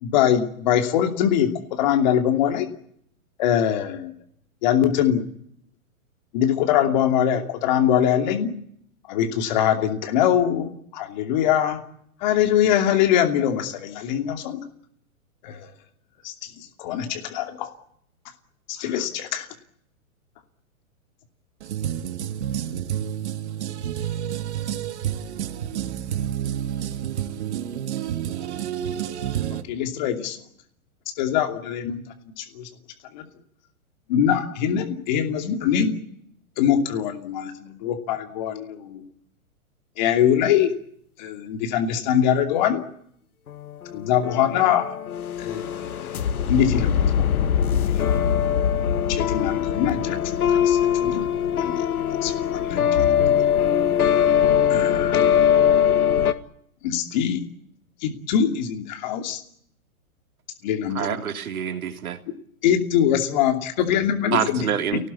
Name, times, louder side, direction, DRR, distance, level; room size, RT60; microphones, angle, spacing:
voice 1, 0.0-2.7 3.4-4.1 4.6-5.2 6.3-8.5 9.1-11.8 12.2-14.6 15.4-15.7 16.2-17.7 18.7-19.5 29.7-30.4 31.2-32.0 32.4-32.7 33.1-33.2 34.1-35.9 36.6-39.0 40.0-40.7 41.2-42.8 43.9-44.9 45.4-47.0 47.8-48.2 49.1-51.2 51.5-51.8 52.2-52.8 54.7-55.2 56.8-57.4 58.0-59.4 60.6-61.0 62.6-64.6, left 9 dB, 30° left, 2.7 m, -23 dB
voice 2, 21.6-29.6, right 10 dB, 50° right, 1.9 m, -29 dB
sound 1, 43.5-56.3, left 9 dB, 90° left, 2.0 m, -21 dB
voice 3, 60.9-62.2 64.3-65.1, right 8 dB, 75° right, 3.5 m, -26 dB
29.0 x 19.0 x 8.6 m
hypercardioid pair, 170°, 43 cm